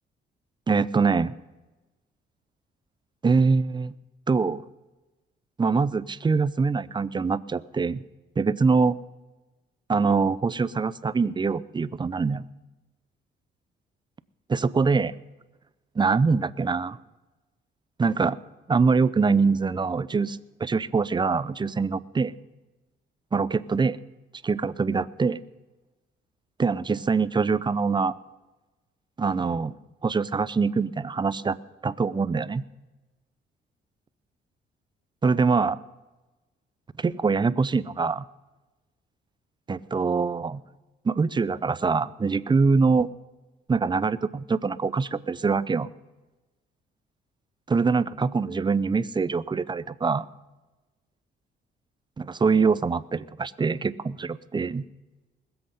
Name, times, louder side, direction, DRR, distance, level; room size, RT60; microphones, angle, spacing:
voice 1, 0.7-1.3 3.2-3.9 4.3-4.6 5.6-8.0 8.4-9.0 9.9-12.4 14.5-15.1 16.0-17.0 18.0-18.4 18.7-22.3 23.3-24.0 24.4-25.4 26.6-28.1 29.2-29.8 30.0-31.6 31.8-32.6 35.2-35.8 37.0-38.2 39.7-40.6 41.0-43.1 43.7-45.9 47.7-50.3 52.2-54.8, right 4 dB, 25° right, 17 dB, 0.6 m, -24 dB
20.5 x 7.9 x 5.7 m, 1.1 s
cardioid pair, 90°, 20 cm